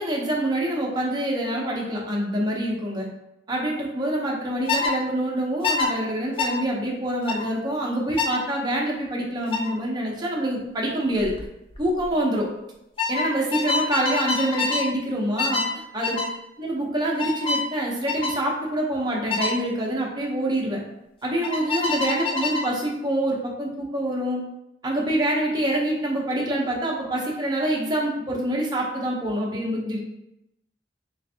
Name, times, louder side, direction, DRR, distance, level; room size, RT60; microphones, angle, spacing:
voice 1, 0.0-3.1 3.5-11.3 11.8-12.5 13.1-15.6 15.9-16.2 16.6-20.8 21.2-24.4 24.8-30.0, right 1 dB, 25° right, -2 dB, 0.7 m, -26 dB
sound 1, 4.7-4.9 5.6-5.9 6.4-6.6 7.3-7.5 8.2-8.4 9.5-9.7 11.2-11.4 11.7-12.1 13.0-14.9 15.4-15.7 16.0-16.3 17.2-17.7 18.1-18.4 19.3-19.6 21.4-22.7, left 4 dB, 30° left, 0.4 m, -26 dB
3.4 x 3.1 x 2.7 m, 0.87 s
head